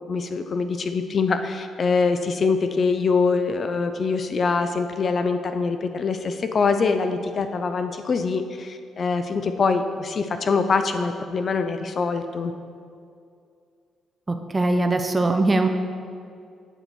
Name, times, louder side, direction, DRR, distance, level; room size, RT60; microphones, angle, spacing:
voice 1, 0.0-12.5, left 4 dB, 45° left, 8 dB, 0.3 m, -24 dB
voice 2, 14.5-15.7, right 2 dB, 20° right, 5 dB, 0.4 m, -20 dB
8.1 x 3.9 x 4.5 m, 2.4 s
cardioid pair, 90°, 0 cm